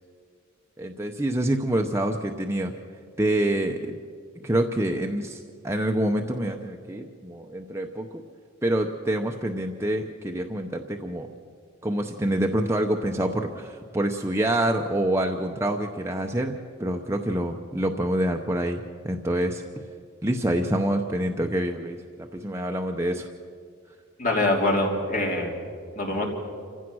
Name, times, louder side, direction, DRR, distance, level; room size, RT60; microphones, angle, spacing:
voice 1, 0.8-2.7 3.2-4.0 4.4-8.2 8.6-11.3 11.8-16.5 16.8-19.6 20.2-22.0 22.3-23.3, right 1 dB, 15° right, 3 dB, 0.7 m, -26 dB
voice 2, 24.2-25.6 25.9-26.3, left 2 dB, 40° left, 0 dB, 3.0 m, -24 dB
27.5 x 15.5 x 6.2 m, 2.2 s
head